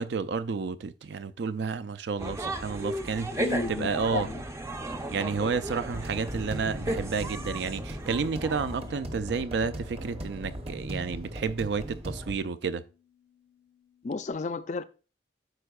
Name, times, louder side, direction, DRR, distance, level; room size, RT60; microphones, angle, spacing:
voice 1, 0.0-4.3 5.1-12.8, right 5 dB, 65° right, 0.4 m, -31 dB
sound 1, 2.2-9.1, right 1 dB, 15° right, 0.5 m, -35 dB
voice 2, 3.3-4.4 14.0-14.8, left 3 dB, 40° left, 0.4 m, -32 dB
sound 2, 5.9-12.4, equal, 35° right, 0.9 m, -38 dB
Bass guitar, 8.1-14.3, left 8 dB, 85° left, 1.0 m, -55 dB
13.0 x 4.4 x 2.3 m
head